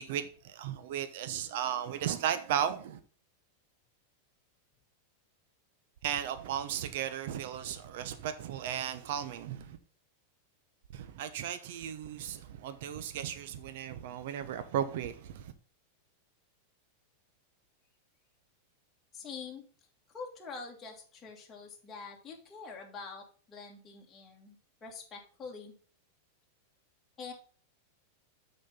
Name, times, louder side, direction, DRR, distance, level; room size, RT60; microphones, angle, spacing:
voice 1, 0.0-3.0 6.0-9.8 10.9-15.5, right 9 dB, 65° right, 0.8 m, -35 dB
voice 2, 19.1-19.6 20.1-25.7 27.2-27.3, left 5 dB, 20° left, 1.7 m, -45 dB
6.4 x 4.3 x 5.6 m
supercardioid pair, 145°, 0 cm